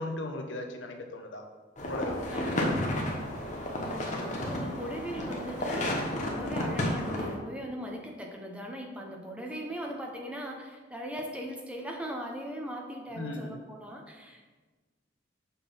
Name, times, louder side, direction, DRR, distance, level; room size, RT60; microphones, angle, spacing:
voice 1, 0.0-1.4 1.8-2.2 2.6-2.9 13.1-13.6, left 2 dB, 80° left, 4 dB, 0.8 m, -37 dB
sound 1, 1.8-7.3, left 1 dB, 40° left, 1.1 m, -32 dB
voice 2, 2.3-3.1 3.8-14.5, equal, 5° right, 0 dB, 0.8 m, -39 dB
6.9 x 3.9 x 5.5 m, 1.3 s
head